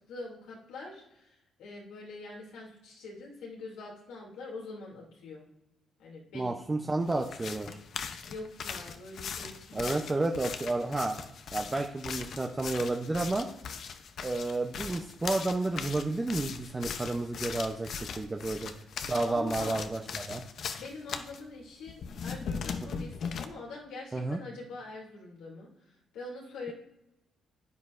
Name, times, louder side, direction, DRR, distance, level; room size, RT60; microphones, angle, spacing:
voice 1, 0.0-5.5 6.0-6.5 8.3-10.1 19.2-19.8 20.8-25.7 26.1-26.7, left 3 dB, 90° left, -2 dB, 2.7 m, -44 dB
voice 2, 6.3-7.8 9.7-11.2 11.5-13.5 14.2-18.7 19.1-20.4 22.9-23.1 24.1-24.4, right 2 dB, 20° right, 3 dB, 0.7 m, -31 dB
sound 1, 7.1-21.4 21.9-23.5, left 6 dB, 60° left, 0.7 m, -39 dB
9.5 x 9.4 x 2.6 m, 0.89 s
cardioid pair, 90°, 0 cm